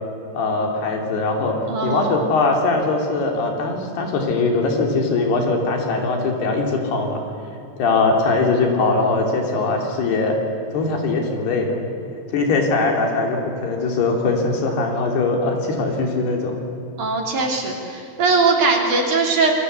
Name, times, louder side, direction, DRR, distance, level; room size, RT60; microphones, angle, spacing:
voice 1, 0.3-1.6 1.8-7.2 7.8-10.4 10.7-11.8 12.3-16.6, left 3 dB, 75° left, 2 dB, 5.0 m, -21 dB
voice 2, 1.7-2.2 17.0-19.5, right 4 dB, 50° right, 1 dB, 4.3 m, -20 dB
28.0 x 22.0 x 8.2 m, 2.5 s
omnidirectional pair, 4.7 m